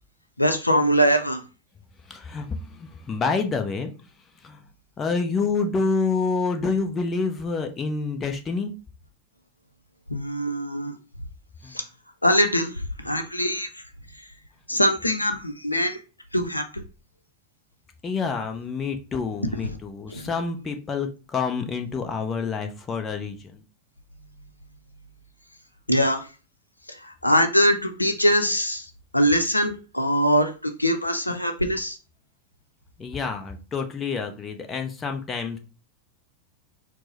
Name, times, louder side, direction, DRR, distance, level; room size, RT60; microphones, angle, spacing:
voice 1, 0.4-1.4 10.1-10.9 11.7-11.8 12.2-12.7 13.0-13.7 14.7-16.0 16.3-16.8 20.1-20.3 25.9-26.2 27.0-28.9 29.1-32.0, equal, 85° left, 7 dB, 0.5 m, -22 dB
voice 2, 2.1-3.9 4.4-4.6 5.0-8.7 11.6-11.8 18.0-23.6 33.0-35.6, left 4 dB, 20° left, 5 dB, 0.6 m, -28 dB
4.5 x 2.0 x 4.1 m, 0.34 s
figure-of-eight pair, 90°, 0 cm